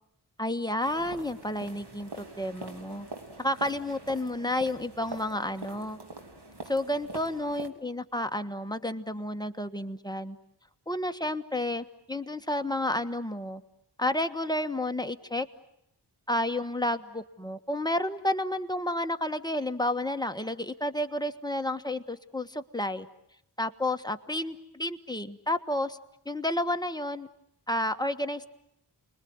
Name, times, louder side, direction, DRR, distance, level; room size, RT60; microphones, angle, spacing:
voice 1, 0.4-3.1 3.4-6.0 6.6-10.4 10.9-13.6 14.0-15.5 16.3-23.1 23.6-26.0 26.2-27.3 27.7-28.5, left 1 dB, 10° left, 7 dB, 1.4 m, -31 dB
sound 1, 0.8-7.7, right 2 dB, 65° right, 3.2 m, -44 dB
29.5 x 21.5 x 9.5 m, 0.81 s
wide cardioid pair, 60°, 43 cm